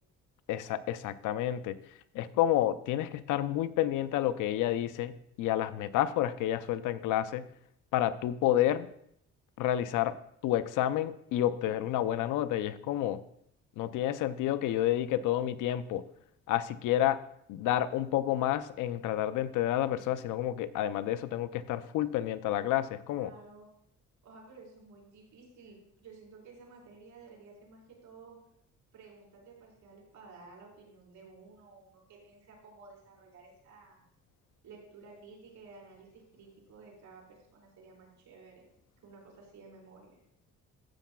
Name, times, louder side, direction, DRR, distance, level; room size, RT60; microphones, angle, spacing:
voice 1, 0.5-1.8 2.1-7.5 7.9-8.9 9.6-10.1 10.4-13.2 13.8-16.0 16.5-17.2 17.5-23.3, left 12 dB, 85° left, 14 dB, 0.5 m, -29 dB
voice 2, 23.1-23.7 24.2-28.4 28.9-34.0 34.6-38.7 39.0-40.2, right 4 dB, 75° right, -2 dB, 4.2 m, -54 dB
13.0 x 8.2 x 2.3 m, 0.71 s
cardioid pair, 90°, 30 cm